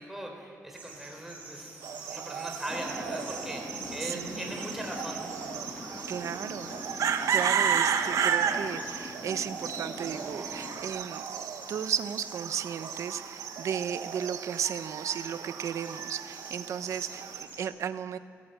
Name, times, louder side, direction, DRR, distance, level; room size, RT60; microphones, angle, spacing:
voice 1, 0.0-1.8 2.1-5.2, right 1 dB, 5° right, 1 dB, 4.0 m, -39 dB
sound 1, 0.7-17.7, right 2 dB, 30° right, 6.0 m, -48 dB
sound 2, 1.8-17.4, right 7 dB, 80° right, 1.5 m, -33 dB
sound 3, 2.7-10.8, left 2 dB, 25° left, 1.9 m, -43 dB
voice 2, 4.0-4.5 6.1-18.2, right 8 dB, 65° right, 11 dB, 0.9 m, -35 dB
29.5 x 16.0 x 9.2 m, 2.3 s
wide cardioid pair, 175°, 6 cm